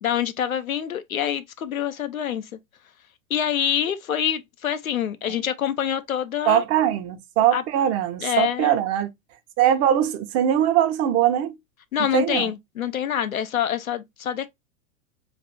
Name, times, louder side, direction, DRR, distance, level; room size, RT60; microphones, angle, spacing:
voice 1, 0.0-2.5 3.3-6.6 7.5-7.6 8.2-8.8 11.9-14.5, left 9 dB, 90° left, 0.7 m, -26 dB
voice 2, 6.4-9.1 9.6-11.6 12.1-12.5, right 11 dB, 35° right, 0.8 m, -21 dB
3.3 x 2.4 x 4.0 m
hypercardioid pair, 100°, 40 cm